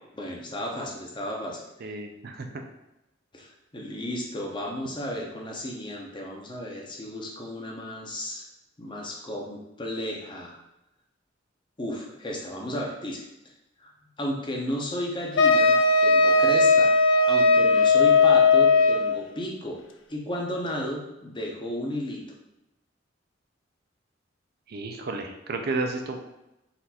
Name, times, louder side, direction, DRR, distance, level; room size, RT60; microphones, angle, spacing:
voice 1, 0.1-1.6 3.3-8.5 8.8-10.6 11.8-13.3 13.8-13.9 14.2-15.7 16.0-16.9 17.3-19.8 20.1-22.2, left 1 dB, 25° left, 0 dB, 0.8 m, -33 dB
voice 2, 1.8-2.5 24.7-26.2, right 3 dB, 55° right, 4 dB, 0.5 m, -32 dB
Wind instrument woodwind instrument, 15.4-19.2, left 3 dB, 90° left, 0.4 m, -18 dB
4.2 x 2.6 x 4.2 m, 0.93 s
head